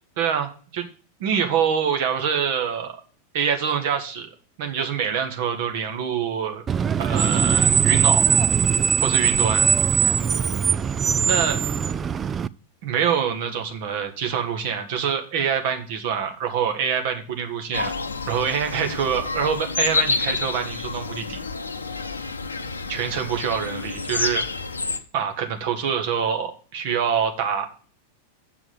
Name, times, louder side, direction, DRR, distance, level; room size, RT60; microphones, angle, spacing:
voice 1, 0.2-0.9 1.2-2.9 3.3-4.3 4.6-6.6 7.0-8.2 9.0-9.7 11.2-11.6 12.8-17.9 18.3-21.4 22.9-24.4 25.1-27.7, right 7 dB, 50° right, 5 dB, 1.8 m, -25 dB
Screech, 6.7-12.5, right 7 dB, 20° right, 0.4 m, -20 dB
sound 1, 17.7-25.0, left 4 dB, 75° left, 0.8 m, -28 dB
7.5 x 5.9 x 7.1 m, 0.40 s
figure-of-eight pair, 90°, 0 cm